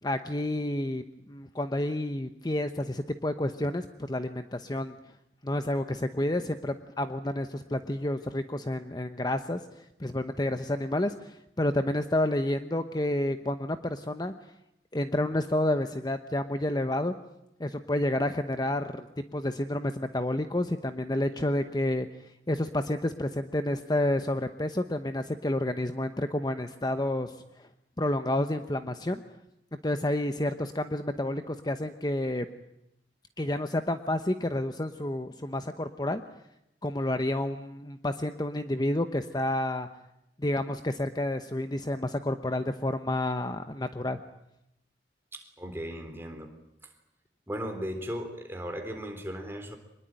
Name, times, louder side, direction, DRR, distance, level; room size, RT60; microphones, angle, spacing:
voice 1, 0.0-4.9 5.4-14.3 14.9-17.1 17.6-19.1 19.3-27.7 28.0-29.2 29.8-32.5 33.4-36.2 36.8-39.9 40.4-44.2, left 1 dB, 25° left, 8 dB, 0.9 m, -30 dB
voice 2, 45.3-46.5 46.8-46.9 47.5-49.8, equal, 15° right, 4 dB, 3.7 m, -37 dB
25.0 x 21.0 x 9.0 m, 0.85 s
head